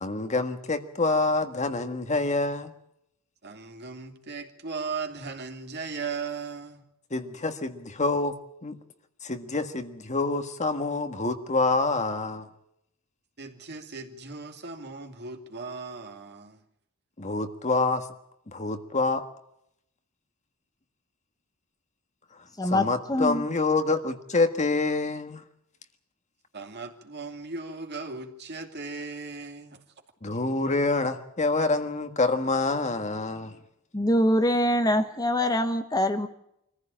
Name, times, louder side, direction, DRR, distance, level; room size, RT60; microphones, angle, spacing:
voice 1, 0.0-2.7 7.1-8.3 8.6-8.8 9.2-12.4 17.2-18.0 18.5-19.2 22.7-25.4 30.2-33.5, left 3 dB, 35° left, 1.6 m, -26 dB
voice 2, 3.4-6.8 13.4-16.6 26.5-29.8, right 4 dB, 50° right, 2.6 m, -37 dB
voice 3, 22.6-23.4 33.9-36.3, left 1 dB, 15° left, 1.1 m, -24 dB
24.5 x 15.0 x 8.8 m
head